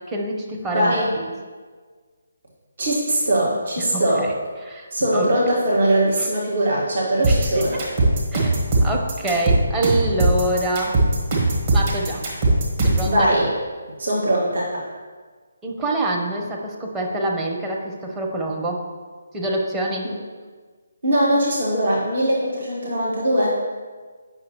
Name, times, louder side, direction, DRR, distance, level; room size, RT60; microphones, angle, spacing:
voice 1, 0.1-0.9 3.9-4.3 4.6-5.3 6.2-6.3 7.3-7.8 8.3-8.5 8.8-11.0 11.7-12.3 12.8-13.3 15.6-18.9 19.3-20.1, right 1 dB, 10° right, -2 dB, 0.9 m, -26 dB
voice 2, 0.7-1.1 2.8-4.3 4.9-7.8 13.0-13.5 14.0-14.8 21.0-23.5, right 1 dB, 55° right, -5 dB, 1.6 m, -21 dB
sound 1, 7.2-13.1, right 2 dB, 35° right, 1.9 m, -19 dB
8.9 x 6.0 x 3.0 m, 1.5 s
figure-of-eight pair, 145°, 0 cm